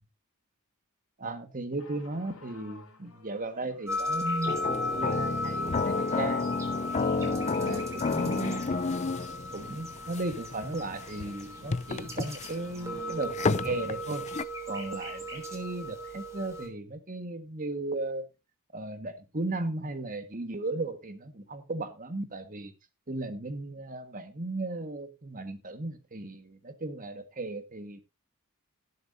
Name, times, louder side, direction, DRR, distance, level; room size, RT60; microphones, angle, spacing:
voice 1, 1.2-6.4 7.1-8.8 9.5-14.2 14.7-18.3 18.7-22.7 23.1-28.0, right 2 dB, 40° right, 1.6 m, -36 dB
sound 1, 1.8-15.3 16.1-16.2, left 2 dB, 80° left, 4.4 m, -54 dB
sound 2, 3.9-16.7, left 1 dB, 15° right, 3.5 m, -36 dB
sound 3, 4.5-14.4, left 4 dB, 30° left, 0.5 m, -31 dB
18.5 x 7.7 x 2.7 m
head